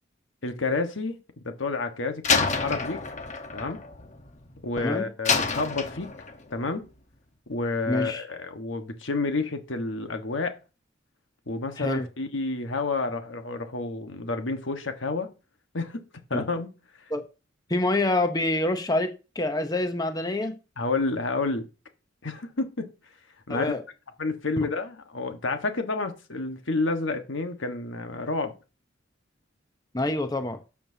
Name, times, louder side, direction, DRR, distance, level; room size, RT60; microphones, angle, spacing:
voice 1, 0.4-1.2 1.4-3.0 3.5-3.8 4.6-6.1 6.5-6.8 7.5-10.6 11.5-15.3 15.7-16.0 16.3-16.7 20.8-21.6 22.2-22.9 23.5-23.7 24.2-28.5, left 3 dB, 85° left, 1.5 m, -29 dB
Slam, 2.2-4.7 5.3-6.5, left 5 dB, 40° left, 1.2 m, -28 dB
voice 2, 7.9-8.2 11.8-12.1 16.3-16.5 17.1-17.2 17.7-20.6 23.5-23.8 29.9-30.6, left 2 dB, 20° left, 0.9 m, -26 dB
12.5 x 7.3 x 2.8 m
head